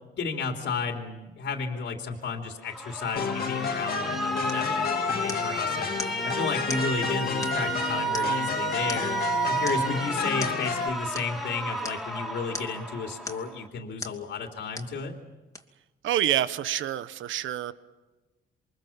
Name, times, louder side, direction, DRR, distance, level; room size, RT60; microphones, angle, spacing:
voice 1, 0.2-5.9 6.2-9.1 9.4-15.1, left 4 dB, 70° left, 3 dB, 3.2 m, -33 dB
Alarm, 2.6-13.7, right 2 dB, ahead, 3.4 m, -32 dB
sound 1, 3.2-10.9, left 6 dB, 50° left, 2.1 m, -31 dB
sound 2, 4.5-4.7 5.3-5.6 6.0-6.2 6.7-6.9 7.4-7.8 8.1-8.5 8.9-9.2 9.7-9.9 10.4-10.6 11.1-11.3 11.8-12.0 12.5-12.8 13.2-13.5 14.0-14.2 14.7-15.0 15.5-15.6, left 2 dB, 15° left, 2.9 m, -38 dB
voice 2, 16.0-17.7, right 11 dB, 75° right, 13 dB, 1.3 m, -27 dB
28.5 x 23.5 x 7.3 m, 1.2 s
cardioid pair, 90°, 20 cm